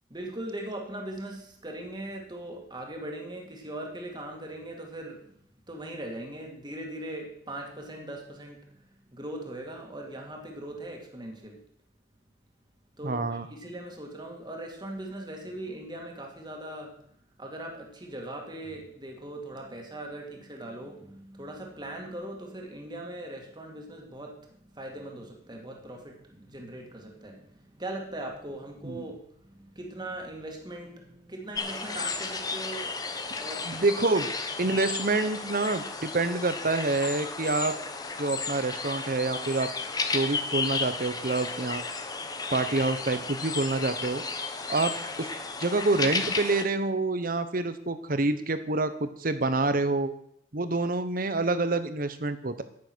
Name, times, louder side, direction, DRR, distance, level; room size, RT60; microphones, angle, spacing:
voice 1, 0.1-5.4 5.7-11.6 13.0-17.1 17.4-34.3 34.6-34.8, right 1 dB, 25° right, 1 dB, 2.1 m, -40 dB
voice 2, 13.0-13.5 28.8-29.0 33.7-34.3 34.6-37.7 38.2-39.7 40.1-41.8 42.5-44.2 44.7-45.3 45.6-50.1 50.5-52.6, right 3 dB, 50° right, 11 dB, 1.0 m, -27 dB
sound 1, 31.5-46.6, left 4 dB, 20° left, 0.9 m, -33 dB
9.7 x 9.6 x 6.3 m, 0.71 s
head